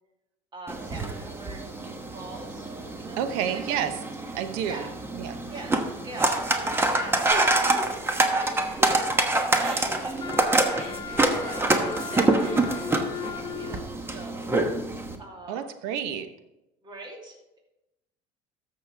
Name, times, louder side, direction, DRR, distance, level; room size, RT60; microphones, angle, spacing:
voice 1, 0.5-1.7 2.1-2.7 3.0-3.6 4.7-4.9 5.5-13.1 13.5-14.5 15.2-15.7 16.8-17.6, right 2 dB, 30° right, 0 dB, 2.5 m, -43 dB
sound 1, 0.7-15.1, right 2 dB, 15° right, 1.1 m, -26 dB
voice 2, 3.2-3.9 4.3-4.8 5.2-5.4 15.5-16.3, right 9 dB, 80° right, 9 dB, 1.0 m, -29 dB
Giggle, 7.3-9.3 9.6-13.8, right 1 dB, 55° right, 4.1 m, -39 dB
Wind instrument woodwind instrument, 10.2-13.9, left 8 dB, 30° left, 0.6 m, -37 dB
13.5 x 6.7 x 3.5 m, 0.93 s
supercardioid pair, 110°, 15 cm